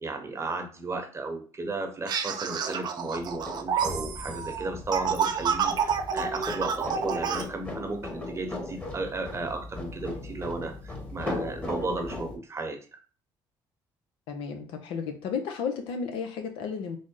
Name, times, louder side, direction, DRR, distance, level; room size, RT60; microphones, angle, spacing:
voice 1, 0.0-12.8, right 2 dB, 30° right, 4 dB, 0.9 m, -34 dB
sound 1, 2.1-7.4, right 7 dB, 55° right, 0.5 m, -29 dB
sound 2, 3.1-12.4, left 2 dB, 15° left, 1.1 m, -38 dB
voice 2, 14.3-17.0, left 6 dB, 80° left, 6 dB, 0.6 m, -33 dB
3.8 x 2.0 x 3.7 m, 0.37 s
supercardioid pair, 80°, 9 cm